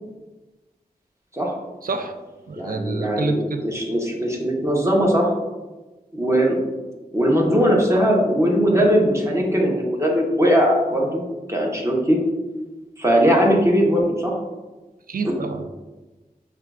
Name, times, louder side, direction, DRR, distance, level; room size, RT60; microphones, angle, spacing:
voice 1, 1.8-2.1 2.5-3.6 15.1-15.7, right 3 dB, 60° right, 7 dB, 0.4 m, -27 dB
voice 2, 2.6-5.3 6.1-6.6 7.1-11.2 11.5-12.2 13.0-14.3 15.2-15.4, equal, 15° right, -2 dB, 0.9 m, -19 dB
5.6 x 2.3 x 2.4 m, 1.2 s
cardioid pair, 40°, 16 cm